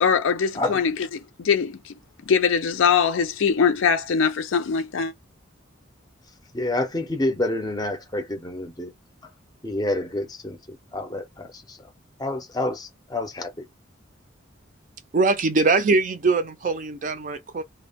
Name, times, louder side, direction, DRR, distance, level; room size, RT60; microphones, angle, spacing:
voice 1, 0.0-5.1, left 6 dB, 75° left, 0.5 m, -22 dB
voice 2, 6.5-8.9 9.6-10.6 10.9-11.8 12.2-13.5, left 1 dB, 20° left, 0.5 m, -28 dB
voice 3, 15.1-17.6, right 3 dB, 40° right, 0.4 m, -22 dB
2.1 x 2.0 x 3.3 m
head